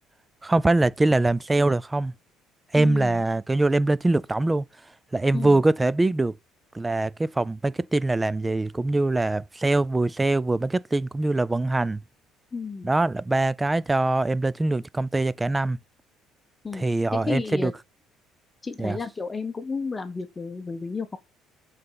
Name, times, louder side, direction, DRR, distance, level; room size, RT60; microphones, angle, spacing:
voice 1, 0.4-2.1 2.7-4.7 5.1-6.3 6.7-12.0 12.8-15.8 16.7-17.7 18.8-19.0, right 2 dB, 15° right, 0.3 m, -23 dB
voice 2, 2.8-3.2 5.3-5.6 12.5-12.9 16.6-16.8 17.1-17.7 18.6-21.2, left 4 dB, 20° left, 0.7 m, -32 dB
7.6 x 4.1 x 3.8 m
cardioid pair, 120°, 0 cm